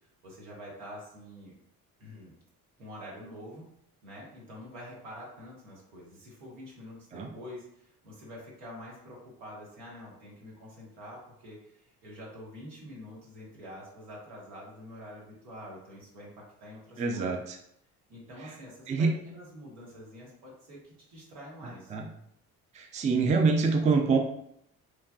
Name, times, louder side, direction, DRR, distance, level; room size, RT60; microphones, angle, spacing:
voice 1, 0.2-1.6 2.0-2.3 2.8-3.7 4.0-17.4 18.1-21.9, equal, 80° right, -4 dB, 1.1 m, -46 dB
voice 2, 17.0-17.6 18.4-18.5 18.9-19.1 21.6-22.1 22.7-24.2, right 4 dB, 20° right, 4 dB, 0.3 m, -26 dB
3.1 x 2.2 x 2.3 m, 0.73 s
hypercardioid pair, 50°, 42 cm